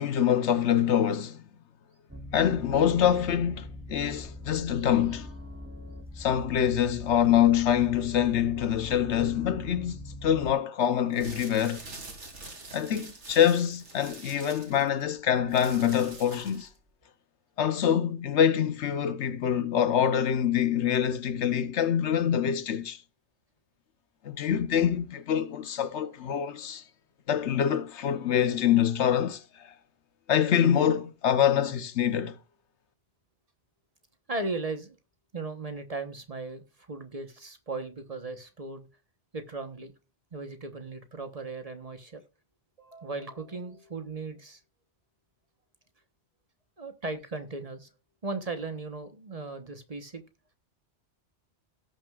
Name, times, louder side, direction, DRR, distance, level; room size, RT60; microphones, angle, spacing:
voice 1, 0.0-1.4 2.3-5.3 6.2-11.8 12.7-16.7 17.6-23.0 24.2-26.8 27.3-29.7 30.3-32.4, left 9 dB, 75° left, 1.1 m, -25 dB
sound 1, 2.1-10.5, left 1 dB, 10° right, 0.9 m, -42 dB
sound 2, 11.0-16.8, right 2 dB, 80° right, 2.9 m, -45 dB
voice 2, 34.3-35.0 35.3-38.9 39.3-39.9 40.3-42.2 42.8-44.6 46.8-47.9 48.2-50.2, right 3 dB, 35° right, 1.1 m, -37 dB
17.5 x 6.2 x 2.4 m
omnidirectional pair, 1.2 m